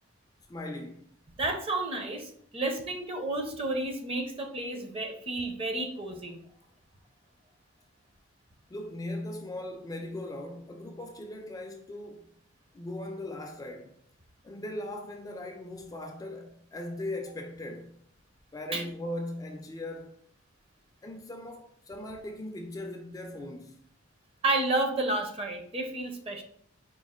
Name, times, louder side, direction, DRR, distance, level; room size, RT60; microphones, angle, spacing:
voice 1, 0.5-1.1 8.7-12.3 12.7-13.9 14.4-18.0 18.5-20.2 21.0-23.8, left 1 dB, 20° left, 0.3 m, -39 dB
voice 2, 1.4-6.4 18.7-18.8 24.4-26.4, right 2 dB, 30° right, 0.6 m, -31 dB
4.5 x 2.4 x 3.6 m
head